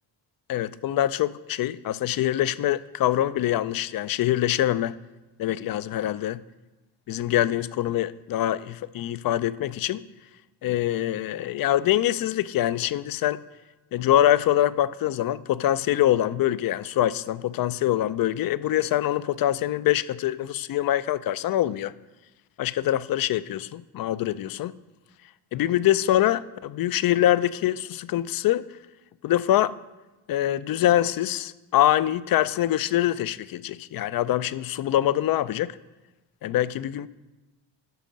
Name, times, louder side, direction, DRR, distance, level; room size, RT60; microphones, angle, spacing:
voice 1, 0.5-4.9 5.4-6.4 7.1-10.0 10.6-13.4 13.9-21.9 22.6-24.8 25.5-28.6 29.2-29.8 30.3-35.8 36.4-37.1, left 13 dB, 50° left, 0.5 m, -24 dB
11.0 x 4.4 x 5.1 m
supercardioid pair, 55°, 46 cm